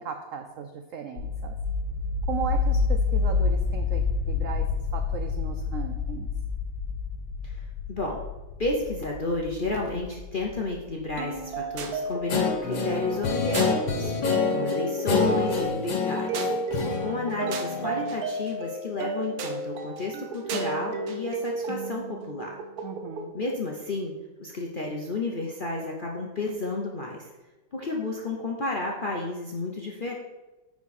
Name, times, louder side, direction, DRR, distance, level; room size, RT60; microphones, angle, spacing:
voice 1, 0.0-1.5 2.3-6.3 22.8-23.3, right 7 dB, 75° right, 5 dB, 0.7 m, -36 dB
sound 1, 1.2-11.8, left 4 dB, 65° left, 1.5 m, -29 dB
voice 2, 7.4-8.2 8.6-16.3 17.0-22.6 23.3-27.3 27.7-30.1, left 2 dB, 50° left, -1 dB, 0.6 m, -32 dB
sound 2, 11.2-23.3, right 3 dB, 60° right, 1.1 m, -33 dB
Guitar, 12.3-18.1, left 5 dB, 90° left, 1.8 m, -27 dB
9.4 x 4.7 x 4.2 m, 1.1 s
omnidirectional pair, 2.0 m